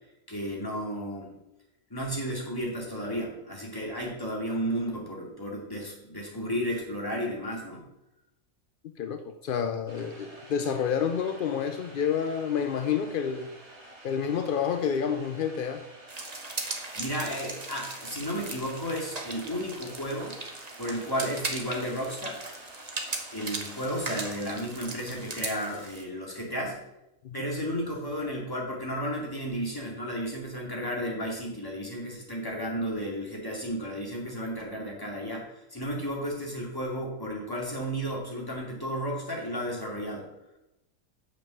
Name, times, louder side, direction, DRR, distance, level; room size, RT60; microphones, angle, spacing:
voice 1, 0.3-1.3 1.9-7.8 16.9-20.4 20.8-22.4 23.3-26.8 27.3-40.3, equal, 15° left, 2.5 m, -33 dB
voice 2, 8.8-13.5 14.0-15.9 27.2-27.4, left 7 dB, 65° left, 0.5 m, -29 dB
Electric water boiler redone, 9.9-24.3, right 1 dB, 50° right, 2.2 m, -50 dB
sound 1, 16.1-26.0, right 3 dB, 30° right, 1.1 m, -38 dB
7.2 x 6.0 x 6.6 m
omnidirectional pair, 1.5 m